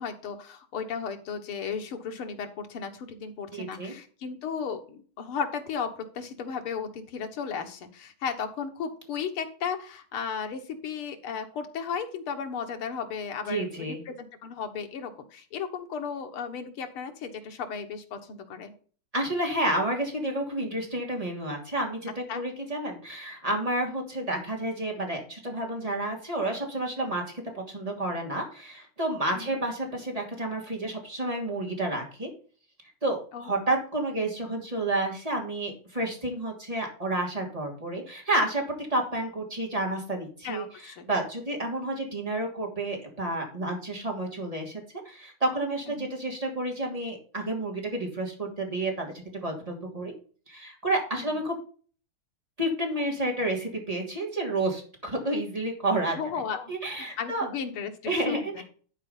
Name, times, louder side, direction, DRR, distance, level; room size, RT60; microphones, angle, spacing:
voice 1, 0.0-14.1 14.4-18.7 22.3-22.4 29.3-29.6 33.3-33.5 40.4-41.1 46.0-46.1 51.2-51.3 56.2-56.7 57.2-58.6, left 6 dB, 85° left, 6 dB, 2.2 m, -35 dB
voice 2, 3.5-3.9 13.5-14.0 19.1-27.2 27.5-32.3 33.0-38.6 38.9-50.1 50.5-51.6 52.6-56.2 56.7-57.5 58.1-58.6, right 1 dB, 15° right, 0 dB, 3.0 m, -30 dB
11.5 x 4.6 x 5.5 m, 0.42 s
omnidirectional pair, 2.3 m